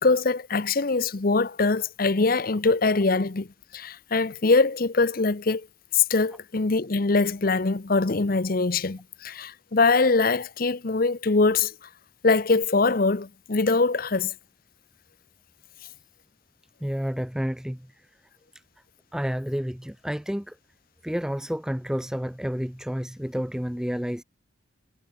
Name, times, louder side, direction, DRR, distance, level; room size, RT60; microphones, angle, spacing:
voice 1, 0.0-3.5 3.7-5.7 5.9-11.7 12.2-14.3, left 3 dB, 50° left, 0.8 m, -23 dB
voice 2, 16.8-18.1 18.5-18.6 19.1-20.6 21.0-24.2, equal, 5° right, 0.5 m, -30 dB
head